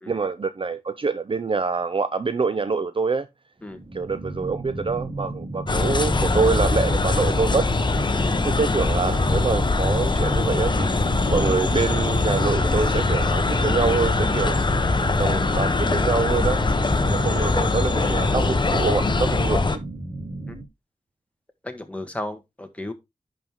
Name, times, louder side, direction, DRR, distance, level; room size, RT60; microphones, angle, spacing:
voice 1, 0.1-3.3 3.9-7.7 8.4-10.9 11.3-14.6 15.1-16.6 17.0-19.8, right 4 dB, 40° right, 0.6 m, -25 dB
sound 1, 3.6-20.7, right 2 dB, 25° right, 1.9 m, -34 dB
sound 2, 5.7-19.8, left 3 dB, 35° left, 0.9 m, -22 dB
voice 2, 21.6-22.9, left 1 dB, 10° left, 1.5 m, -34 dB
10.5 x 4.7 x 3.5 m
wide cardioid pair, 105°, 14 cm